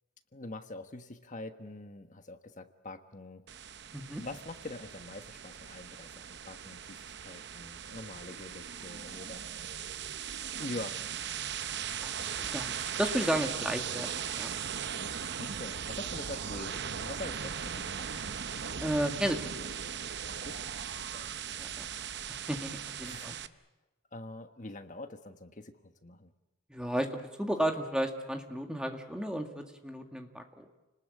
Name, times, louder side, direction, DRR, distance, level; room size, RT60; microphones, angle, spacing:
voice 1, 0.3-3.4 4.2-9.4 10.6-11.0 15.4-18.3 20.3-21.3 23.0-23.6 24.1-26.3, left 2 dB, 35° left, 8 dB, 1.3 m, -45 dB
sound 1, 3.5-23.5, right 8 dB, 55° right, 0.8 m, -38 dB
voice 2, 12.0-14.5 18.8-19.4 21.6-21.8 22.3-23.4 26.7-30.7, equal, 5° right, 4 dB, 1.9 m, -33 dB
29.5 x 19.5 x 8.4 m, 1.1 s
head